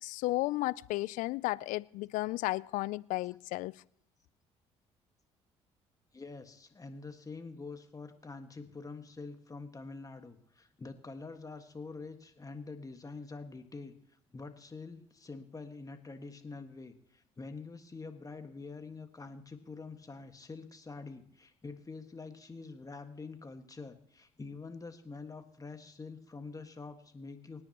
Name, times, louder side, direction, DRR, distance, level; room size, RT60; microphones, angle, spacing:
voice 1, 0.0-3.7, left 19 dB, 70° left, 0.4 m, -33 dB
voice 2, 6.1-13.9 14.3-27.6, left 4 dB, 25° left, 1.6 m, -46 dB
24.5 x 9.8 x 3.0 m
hypercardioid pair, 60°, 14 cm